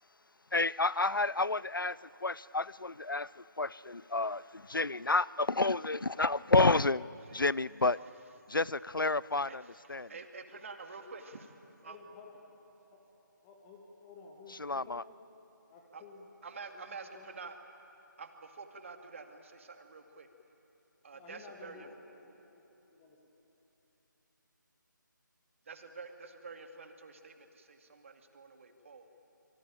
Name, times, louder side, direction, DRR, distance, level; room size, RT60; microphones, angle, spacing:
voice 1, 0.5-2.0 2.2-8.0 8.5-9.6 9.9-10.1 14.6-15.0, left 3 dB, 85° left, 21 dB, 0.5 m, -30 dB
voice 2, 1.4-1.7 11.8-12.4 12.9-13.0 13.4-15.1 15.7-16.3 16.7-16.8 17.1-17.3 21.1-22.6 22.9-23.2, left 4 dB, 15° left, 0 dB, 1.9 m, -53 dB
voice 3, 9.5-12.0 15.9-16.0 16.4-17.6 18.2-20.3 21.0-21.9 25.7-29.1, right 4 dB, 40° right, 5 dB, 2.2 m, -48 dB
27.5 x 23.5 x 8.9 m, 3.0 s
figure-of-eight pair, 155°, 11 cm